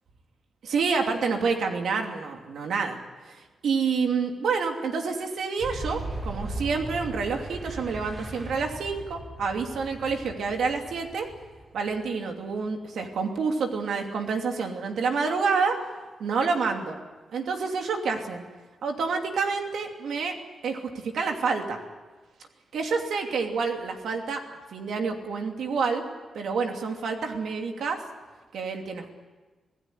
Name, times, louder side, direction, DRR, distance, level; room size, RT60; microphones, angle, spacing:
voice 1, 0.6-3.0 3.6-11.3 11.7-15.8 16.2-17.0 17.3-18.4 18.8-20.4 20.6-21.8 22.7-26.0 26.3-28.0 28.5-29.1, right 5 dB, 80° right, 3 dB, 2.8 m, -28 dB
Boom, 5.6-12.1, right 2 dB, 35° right, 5.7 m, -38 dB
26.5 x 17.0 x 9.6 m, 1.3 s
cardioid pair, 115°, 0 cm